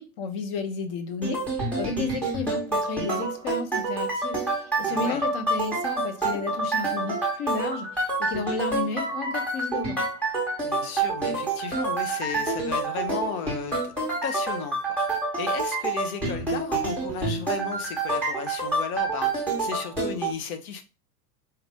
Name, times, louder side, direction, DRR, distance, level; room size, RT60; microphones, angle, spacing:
voice 1, 0.0-10.0, left 4 dB, 40° left, 0.7 m, -32 dB
sound 1, 1.2-20.3, right 3 dB, 5° left, 0.8 m, -28 dB
voice 2, 4.9-5.2 10.6-13.9 14.2-20.8, left 6 dB, 65° left, 1.0 m, -35 dB
4.2 x 2.6 x 3.4 m
supercardioid pair, 150°, 48 cm